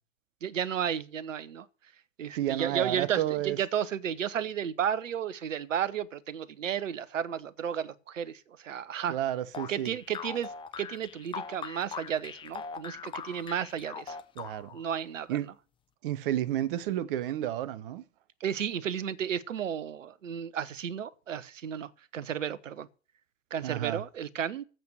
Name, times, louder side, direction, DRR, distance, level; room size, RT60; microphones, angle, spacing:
voice 1, 0.4-1.7 2.2-9.2 9.7-14.2 14.7-15.4 18.4-22.9 23.5-24.6, right 8 dB, 65° right, 1.0 m, -33 dB
voice 2, 2.3-3.6 9.1-9.9 14.4-14.8 15.3-15.5 16.0-18.0 23.6-24.0, right 12 dB, 40° right, 0.9 m, -31 dB
sound 1, 9.5-14.9, left 6 dB, 10° left, 0.8 m, -41 dB
9.2 x 7.8 x 9.2 m
figure-of-eight pair, 100°, 41 cm